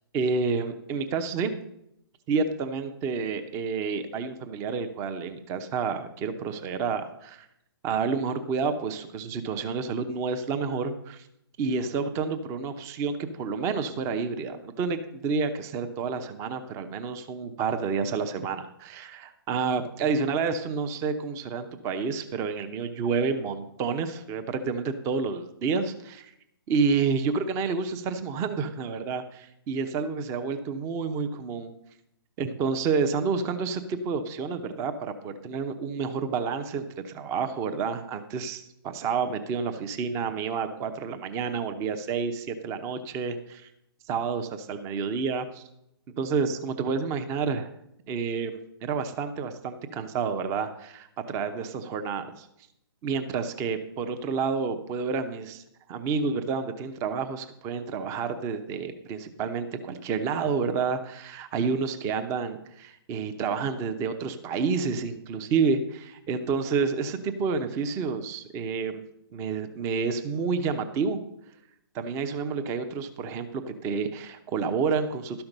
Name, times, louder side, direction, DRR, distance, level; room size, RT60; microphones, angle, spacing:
voice 1, 0.1-1.5 2.3-7.5 7.8-11.2 11.6-26.3 26.7-31.7 32.4-43.7 44.1-45.6 46.2-47.7 48.1-52.5 53.0-55.6 55.9-69.0 69.3-71.2 71.9-75.4, right 5 dB, 20° right, 8 dB, 0.8 m, -29 dB
12.0 x 5.8 x 6.6 m, 0.78 s
hypercardioid pair, 145°, 13 cm